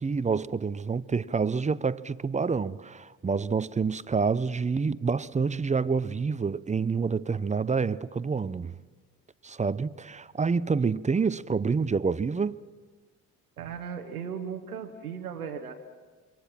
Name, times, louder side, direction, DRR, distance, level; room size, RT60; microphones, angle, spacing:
voice 1, 0.0-8.8 9.4-12.6, right 5 dB, 15° right, 0.6 m, -28 dB
voice 2, 13.6-15.7, right 7 dB, 90° right, 1.1 m, -36 dB
26.0 x 23.5 x 6.0 m
hypercardioid pair, 50°, 43 cm